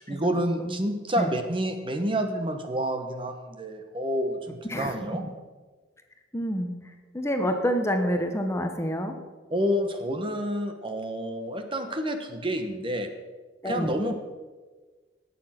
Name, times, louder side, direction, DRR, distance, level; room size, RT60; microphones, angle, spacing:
voice 1, 0.0-5.3 9.5-13.1 13.6-14.2, equal, 30° right, 6 dB, 1.1 m, -29 dB
voice 2, 6.3-6.7 7.1-9.2 13.6-14.0, equal, 15° left, 5 dB, 1.0 m, -27 dB
18.5 x 7.0 x 5.8 m, 1.3 s
head